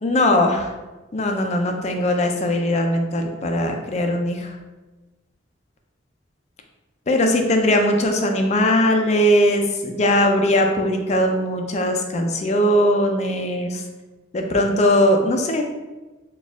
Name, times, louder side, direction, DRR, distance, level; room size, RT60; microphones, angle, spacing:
voice 1, 0.0-0.7 1.1-4.5 7.1-13.8 14.3-15.6, left 1 dB, 35° left, 3 dB, 0.4 m, -20 dB
4.1 x 2.4 x 3.6 m, 1.1 s
head